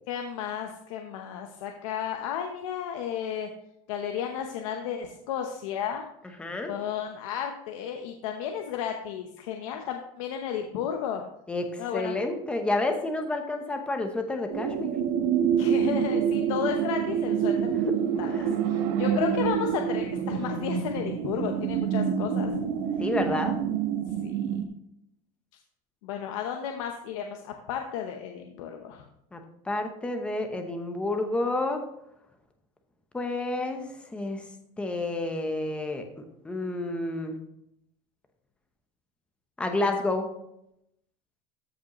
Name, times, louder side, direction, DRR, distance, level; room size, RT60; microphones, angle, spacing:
voice 1, 0.1-3.5 3.9-6.0 6.7-11.2 11.8-12.2 15.6-17.7 18.2-22.5 24.2-24.4 26.0-29.0, left 8 dB, 90° left, 4 dB, 0.9 m, -33 dB
voice 2, 6.4-6.7 11.5-14.9 17.7-17.9 18.3-18.6 23.0-23.5 29.3-31.8 33.1-34.4 34.8-36.1 36.4-37.4 39.6-40.3, left 2 dB, 5° left, 5 dB, 0.8 m, -30 dB
sound 1, 14.5-24.7, right 8 dB, 70° right, 1.0 m, -27 dB
14.0 x 5.1 x 3.0 m, 0.79 s
cardioid pair, 175°, 17 cm